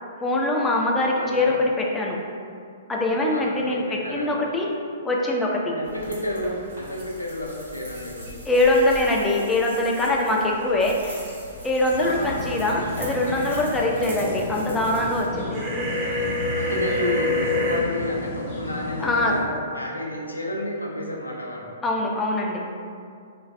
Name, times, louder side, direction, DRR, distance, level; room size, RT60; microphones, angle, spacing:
voice 1, 0.2-2.2 2.9-4.7 5.0-5.8 8.5-11.4 11.6-15.6 19.0-19.4 21.8-22.7, left 2 dB, 10° left, -2 dB, 0.4 m, -23 dB
voice 2, 1.1-1.6 3.3-4.3 5.8-8.4 10.5-10.6 12.0-12.5 16.5-21.7, left 1 dB, 85° left, -2 dB, 0.5 m, -31 dB
sound 1, 5.8-15.2, right 1 dB, 65° right, 0.9 m, -42 dB
sound 2, 11.9-19.4, left 2 dB, 50° left, 0.7 m, -33 dB
sound 3, 15.5-17.8, left 2 dB, 25° right, 0.7 m, -26 dB
2.5 x 2.3 x 3.1 m, 2.3 s
figure-of-eight pair, 115°, 0 cm